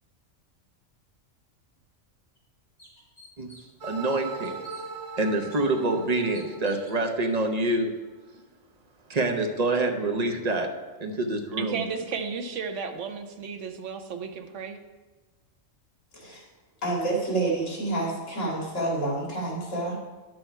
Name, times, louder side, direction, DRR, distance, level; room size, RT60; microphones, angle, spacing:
sound 1, 1.7-1.8 2.4-2.5 2.8-3.8 4.1-4.8 5.5-5.6 6.3-7.0, left 1 dB, 45° left, 3.3 m, -51 dB
voice 1, 3.8-4.5 5.2-7.9 9.1-10.7 11.0-11.8, right 2 dB, 35° right, 1.0 m, -26 dB
sound 2, 3.8-7.8, right 4 dB, 85° right, 1.9 m, -40 dB
voice 2, 11.6-14.8, right 5 dB, 70° right, 1.2 m, -33 dB
voice 3, 16.1-16.5 16.8-20.0, right 2 dB, 75° left, 2.7 m, -28 dB
10.5 x 6.4 x 4.5 m
omnidirectional pair, 1.3 m